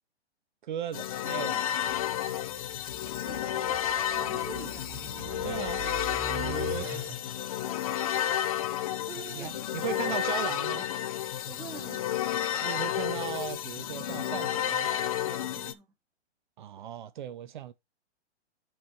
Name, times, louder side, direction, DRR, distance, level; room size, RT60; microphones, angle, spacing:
voice 1, 0.6-1.7 5.4-5.8 9.4-10.8 12.6-14.9 16.6-17.7, right 10 dB, 45° right, 0.6 m, -37 dB
sound 1, 0.9-15.7, left 11 dB, 35° left, 0.5 m, -31 dB
sound 2, 1.8-7.5, right 7 dB, 30° right, 1.3 m, -42 dB
voice 2, 3.2-5.1 9.1-9.8 11.5-12.1 15.3-15.9, right 7 dB, 10° right, 0.7 m, -46 dB
6.0 x 5.1 x 4.5 m
hypercardioid pair, 140°, 34 cm